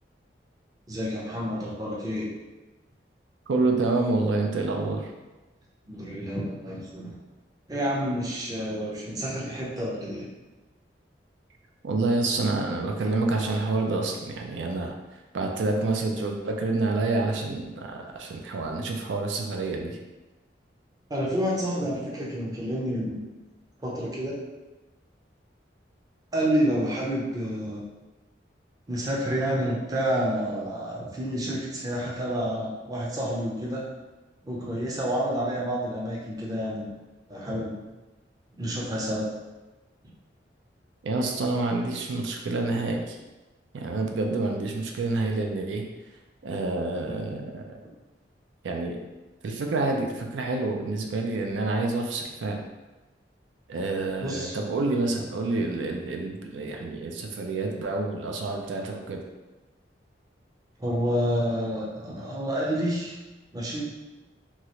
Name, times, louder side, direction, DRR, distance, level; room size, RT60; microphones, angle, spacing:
voice 1, 0.9-2.3 5.9-7.2 7.7-10.3 21.1-23.2 23.8-24.3 26.3-27.8 28.9-33.8 34.4-36.9 37.3-37.8 38.6-39.3 54.2-54.6 60.8-63.2 63.5-63.9, equal, 20° right, -5 dB, 0.5 m, -29 dB
voice 2, 3.5-5.1 11.8-14.9 15.3-20.0 41.0-43.2 43.7-45.8 46.4-47.7 48.6-49.0 49.4-52.6 53.7-59.2, right 3 dB, 85° right, 2 dB, 0.4 m, -28 dB
3.0 x 2.4 x 2.9 m, 1.1 s
head